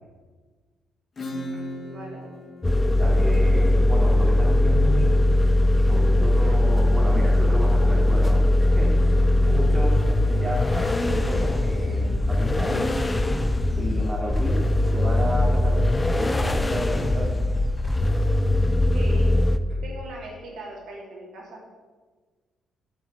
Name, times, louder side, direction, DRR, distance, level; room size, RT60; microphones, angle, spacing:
Acoustic guitar / Strum, 1.2-6.5, left 1 dB, 40° left, 2.0 m, -39 dB
voice 1, 1.8-2.2 10.3-10.4 18.9-19.4 19.7-21.6, right 1 dB, 70° right, -2 dB, 3.0 m, -39 dB
sound 1, 2.6-19.6, left 1 dB, 15° left, 0.6 m, -20 dB
voice 2, 2.9-5.3 5.8-13.0 13.8-17.4, equal, 20° right, -3 dB, 2.9 m, -32 dB
8.6 x 6.4 x 7.0 m, 1.4 s
cardioid pair, 90°, 0 cm